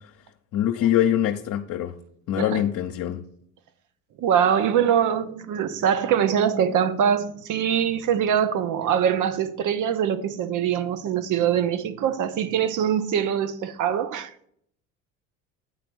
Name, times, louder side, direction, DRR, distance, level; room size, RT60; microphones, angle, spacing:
voice 1, 0.5-1.9 2.3-3.2, left 11 dB, 55° left, 0.7 m, -23 dB
voice 2, 4.2-14.3, right 8 dB, 55° right, 0.8 m, -23 dB
9.3 x 3.4 x 6.1 m
hypercardioid pair, 65°, 37 cm